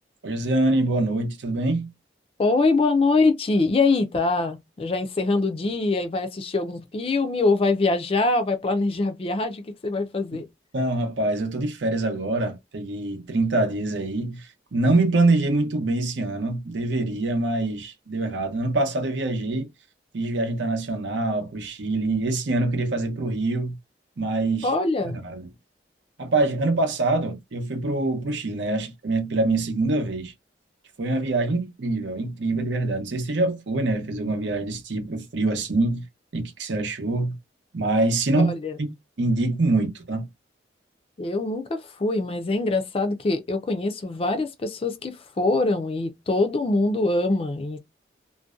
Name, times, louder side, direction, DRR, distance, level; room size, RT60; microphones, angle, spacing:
voice 1, 0.2-1.9 10.7-19.7 20.1-23.8 24.2-24.7 25.2-25.5 26.2-30.3 31.0-36.0 36.3-37.4 37.7-38.9 39.2-40.3, right 2 dB, 85° right, 0.7 m, -25 dB
voice 2, 2.4-10.5 24.6-25.2 38.3-38.8 41.2-47.8, left 3 dB, 30° left, 0.4 m, -24 dB
2.6 x 2.1 x 2.3 m
head